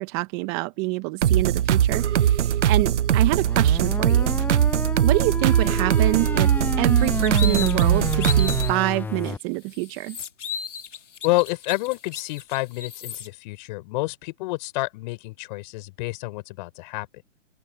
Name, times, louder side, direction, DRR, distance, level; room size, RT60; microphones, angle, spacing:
voice 1, 0.0-4.3 5.0-6.5 6.8-10.2, right 25 dB, 25° right, 0.9 m, -27 dB
sound 1, 1.2-8.7, right 10 dB, 70° right, 0.8 m, -20 dB
sound 2, 3.4-9.4, left 4 dB, 5° left, 1.0 m, -30 dB
sound 3, 7.0-8.8 9.2-9.3 9.7-13.3, left 7 dB, 75° left, 2.1 m, -35 dB
voice 2, 11.2-17.1, left 22 dB, 40° left, 5.2 m, -28 dB
open air
hypercardioid pair, 140°, 37 cm